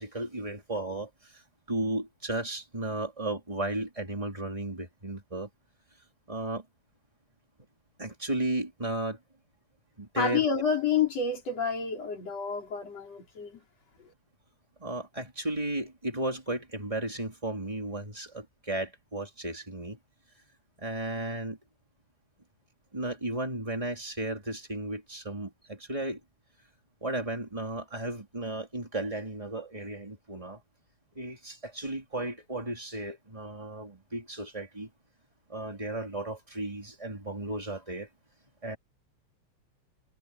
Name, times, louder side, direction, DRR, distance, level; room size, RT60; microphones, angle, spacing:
voice 1, 0.0-1.4 1.7-5.5 6.3-6.6 8.0-9.2 10.0-10.4 14.8-20.0 20.8-21.6 22.9-26.2 27.0-30.6 31.1-34.9 35.5-38.1 38.6-38.8, right 2 dB, 10° right, 4.1 m, -34 dB
voice 2, 10.2-13.6 14.0-14.1, left 6 dB, 60° left, 5.6 m, -29 dB
omnidirectional pair, 3.3 m